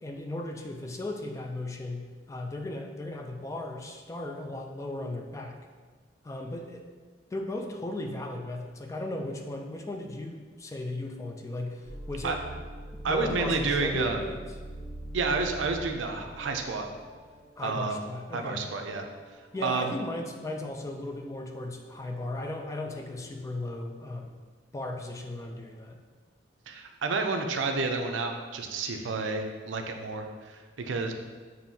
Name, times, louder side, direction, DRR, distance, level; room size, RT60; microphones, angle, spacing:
voice 1, 0.0-5.6 6.2-6.8 7.3-12.5 12.9-14.4 17.6-18.7 19.5-24.4 24.7-26.0, left 1 dB, 15° left, 3 dB, 0.3 m, -36 dB
sound 1, 11.8-23.4, right 1 dB, 85° left, 1.4 m, -45 dB
voice 2, 13.0-14.2 15.1-16.8 17.6-18.0 18.3-19.1 19.6-19.9 26.7-31.1, right 3 dB, 90° right, 4 dB, 0.5 m, -30 dB
7.0 x 2.7 x 2.7 m, 1.5 s
head